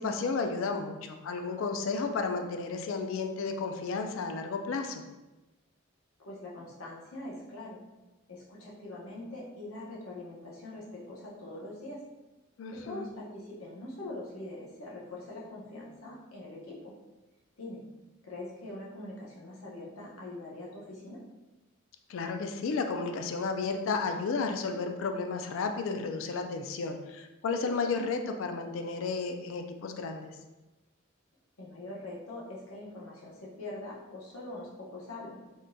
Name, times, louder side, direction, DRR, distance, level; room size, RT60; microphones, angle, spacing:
voice 1, 0.0-5.0 12.6-13.1 22.1-30.3, left 4 dB, 65° left, 5 dB, 0.3 m, -33 dB
voice 2, 6.2-7.8 8.3-12.0 12.7-16.9 17.6-17.8 18.2-21.2 31.6-35.4, left 2 dB, 85° left, -4 dB, 0.8 m, -43 dB
3.6 x 2.6 x 2.2 m, 1.1 s
head